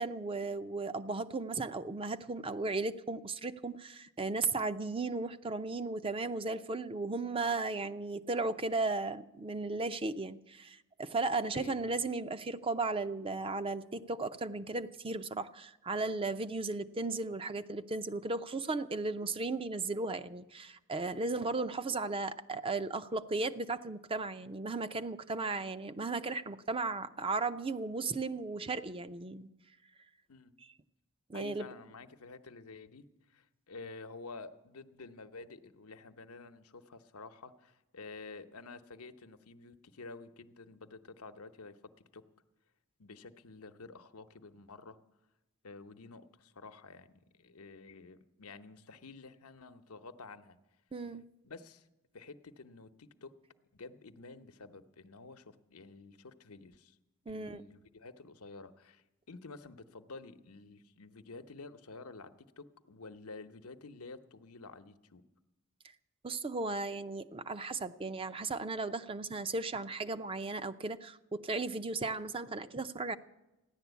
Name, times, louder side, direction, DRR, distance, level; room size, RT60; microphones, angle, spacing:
voice 1, 0.0-29.5 31.3-31.7 50.9-51.3 57.3-57.6 66.2-73.2, right 3 dB, 25° right, 12 dB, 0.5 m, -35 dB
voice 2, 11.5-12.0 30.3-30.5 31.3-33.0 33.3-41.8 42.1-42.2 43.0-45.0 45.6-50.6 51.4-51.9 52.1-53.3 53.7-57.0 57.3-65.2, left 3 dB, 85° left, 9 dB, 0.9 m, -50 dB
15.0 x 11.0 x 8.2 m, 0.98 s
head